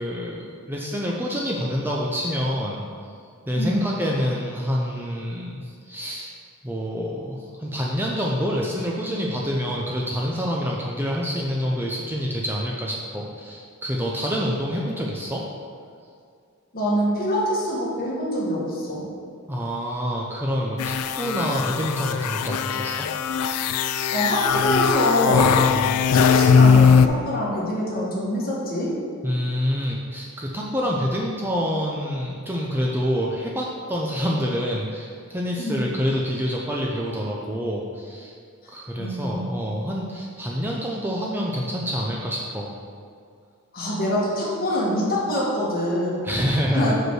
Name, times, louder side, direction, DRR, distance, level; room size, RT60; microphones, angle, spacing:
voice 1, 0.0-2.9 3.5-6.3 6.6-15.4 19.5-23.0 23.3-23.5 25.7-25.9 29.2-38.3 38.7-42.7 46.2-46.9, equal, 10° right, -3 dB, 0.5 m, -27 dB
voice 2, 3.6-3.9 16.7-19.1 24.1-25.5 26.1-28.9 35.6-35.8 39.0-39.5 43.7-46.2 46.7-46.9, equal, 40° left, -5 dB, 1.6 m, -24 dB
sound 1, 20.8-27.1, left 6 dB, 90° left, 0.3 m, -19 dB
6.2 x 5.2 x 4.7 m, 2.2 s
head